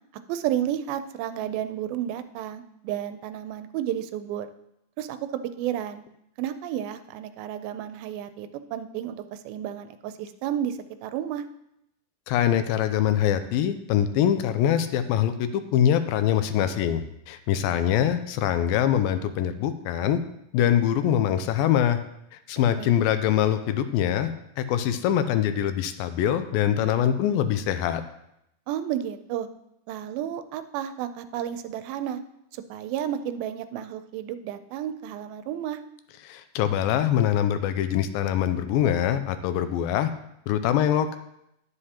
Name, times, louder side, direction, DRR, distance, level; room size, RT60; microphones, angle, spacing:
voice 1, 0.3-4.5 5.0-5.2 5.4-6.0 6.4-11.4 22.6-23.0 28.7-29.5 29.9-32.2 32.5-35.8, right 10 dB, 85° right, 10 dB, 2.4 m, -32 dB
voice 2, 12.3-20.2 20.5-22.0 22.5-24.3 24.6-28.0 36.3-40.1 40.5-41.2, left 10 dB, 85° left, 10 dB, 2.3 m, -23 dB
9.8 x 9.8 x 2.9 m, 0.80 s
omnidirectional pair, 4.2 m